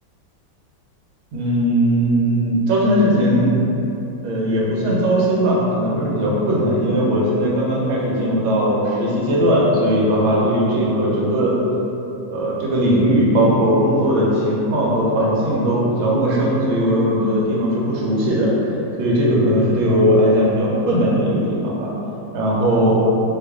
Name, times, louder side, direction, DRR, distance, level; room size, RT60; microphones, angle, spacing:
voice 1, 1.3-3.6 4.2-11.6 12.3-18.6 19.0-21.9 22.3-23.0, equal, 85° right, -5 dB, 1.5 m, -18 dB
3.4 x 2.4 x 3.4 m, 2.9 s
omnidirectional pair, 2.2 m